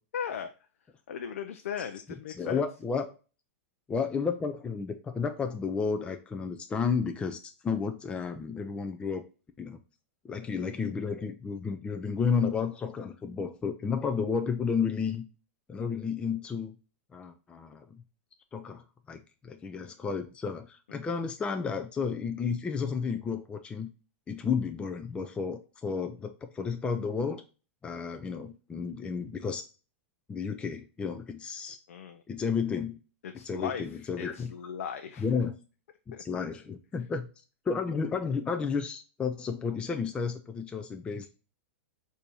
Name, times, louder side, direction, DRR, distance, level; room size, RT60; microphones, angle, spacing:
voice 1, 0.1-0.5 1.1-2.6 21.0-21.2 31.9-32.2 33.2-33.8 34.2-35.2 36.1-36.2 41.2-41.3, left 8 dB, 75° left, 7 dB, 0.5 m, -37 dB
voice 2, 2.4-3.1 3.9-9.2 9.6-9.8 10.2-15.2 15.7-16.7 17.1-18.0 18.5-23.9 24.3-27.4 27.8-29.6 30.3-31.8 32.3-33.0 33.4-34.5 35.2-35.5 36.1-37.3 37.7-41.3, left 5 dB, 15° left, 6 dB, 0.4 m, -32 dB
6.5 x 2.7 x 2.9 m, 0.34 s
hypercardioid pair, 130°, 7 cm